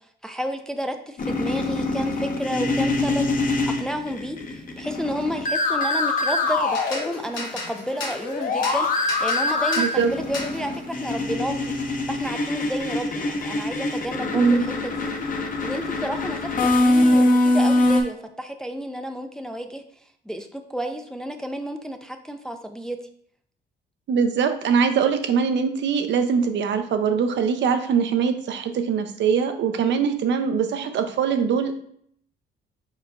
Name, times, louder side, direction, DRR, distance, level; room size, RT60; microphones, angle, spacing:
voice 1, 0.2-3.3 3.8-19.8 20.3-23.0, equal, 5° left, 6 dB, 0.4 m, -31 dB
sound 1, 1.2-7.5 7.8-18.0, left 2 dB, 45° left, 0.8 m, -24 dB
sound 2, 6.7-16.4 16.7-18.0, left 2 dB, 75° left, 1.3 m, -39 dB
voice 2, 9.8-10.1 14.3-14.6 24.1-31.7, right 6 dB, 65° right, 7 dB, 0.6 m, -22 dB
4.6 x 4.3 x 2.5 m, 0.64 s
cardioid pair, 90°, 20 cm